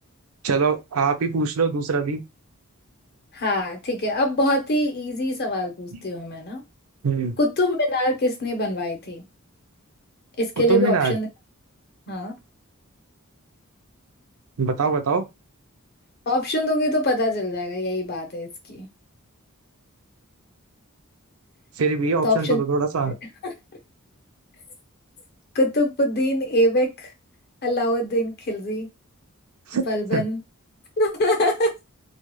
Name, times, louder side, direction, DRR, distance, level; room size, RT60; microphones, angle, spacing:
voice 1, 0.4-2.2 5.9-6.0 7.0-7.4 10.7-11.2 14.6-15.3 21.8-23.1 29.7-29.8 30.1-30.2, right 4 dB, 80° right, 0.5 m, -23 dB
voice 2, 3.3-6.6 7.4-9.2 10.4-11.3 12.1-12.3 16.3-18.9 22.2-22.6 23.4-23.5 25.5-27.1 27.6-28.9 29.7-30.4 31.0-31.7, left 1 dB, 50° left, 0.8 m, -23 dB
2.3 x 2.2 x 3.0 m
head